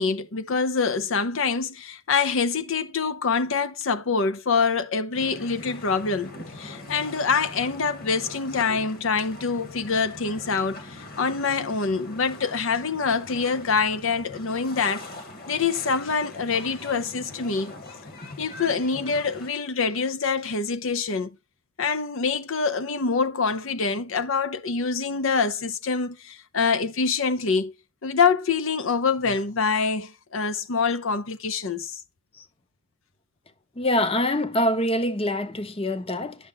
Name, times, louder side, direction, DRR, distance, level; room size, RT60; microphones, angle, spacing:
voice 1, 0.0-15.0 15.5-17.7 18.4-21.3 21.8-27.7 28.0-32.0, left 5 dB, 65° left, 0.7 m, -25 dB
sound 1, 5.1-19.5, left 2 dB, 45° left, 1.9 m, -42 dB
voice 2, 33.8-36.5, left 1 dB, 25° left, 0.9 m, -25 dB
11.0 x 6.7 x 3.9 m
head